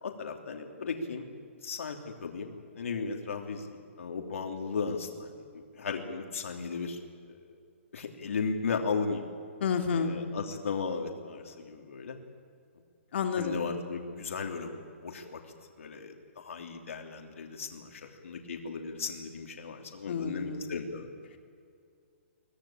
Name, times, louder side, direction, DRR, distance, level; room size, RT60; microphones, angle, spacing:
voice 1, 0.0-1.3 1.6-7.0 7.3-7.4 7.9-9.2 9.9-12.2 13.3-14.8 15.0-15.4 15.8-21.1, left 5 dB, 80° left, 3 dB, 3.0 m, -36 dB
voice 2, 9.6-10.1 13.1-13.6 20.1-20.7, left 6 dB, 55° left, 5 dB, 2.8 m, -30 dB
23.0 x 18.5 x 8.7 m, 2.3 s
hypercardioid pair, 165°, 7 cm